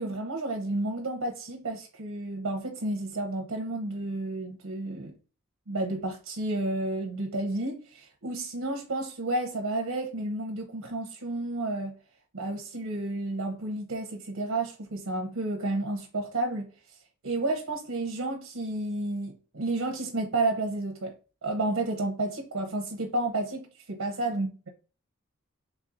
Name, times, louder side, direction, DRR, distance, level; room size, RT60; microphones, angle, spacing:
voice 1, 0.0-5.1 5.7-11.9 12.3-16.7 17.2-21.1 21.4-24.7, right 2 dB, 85° right, 0.8 m, -31 dB
4.1 x 3.6 x 2.5 m
head